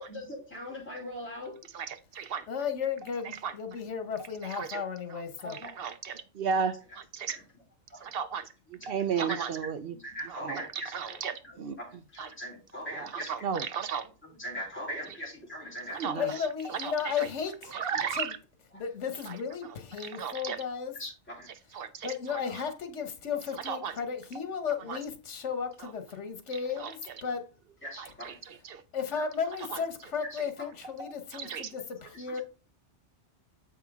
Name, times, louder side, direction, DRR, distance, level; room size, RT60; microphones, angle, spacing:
voice 1, 0.0-1.5 5.4-5.7 7.3-7.4 7.9-8.1 8.8-9.4 10.0-11.2 11.4-13.5 14.2-16.3 17.8-17.9 18.7-18.8 21.0-21.5 27.8-28.4 29.2-29.3 30.3-30.4 32.0-32.4, equal, 10° left, 3.3 m, -41 dB
voice 2, 1.7-2.4 3.4-3.5 4.6-4.8 5.8-5.9 6.4-7.4 8.0-9.9 10.3-11.8 12.2-12.3 12.9-14.1 15.9-16.3 16.6-17.3 17.7-18.4 19.3-19.4 20.0-20.6 21.7-22.4 23.6-23.9 24.9-25.0 25.8-25.9 26.8-26.9 28.0-28.8 29.7-29.8 31.0-31.7, right 6 dB, 60° right, 0.8 m, -34 dB
voice 3, 2.5-5.6 16.2-17.8 18.1-18.3 18.8-20.9 22.0-27.5 28.9-32.4, left 6 dB, 85° left, 1.4 m, -34 dB
7.7 x 5.5 x 3.5 m
omnidirectional pair, 1.2 m